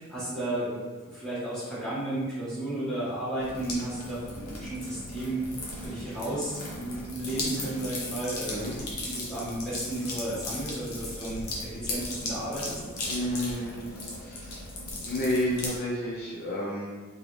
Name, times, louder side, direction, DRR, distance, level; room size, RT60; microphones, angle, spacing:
voice 1, 0.0-5.4 5.8-12.8, right 1 dB, 5° left, -10 dB, 1.4 m, -33 dB
sound 1, 3.4-15.8, left 2 dB, 85° left, 1.0 m, -37 dB
voice 2, 13.1-13.8 14.2-14.6 15.1-16.9, left 1 dB, 45° left, -6 dB, 0.6 m, -30 dB
3.8 x 3.3 x 3.1 m, 1.4 s
head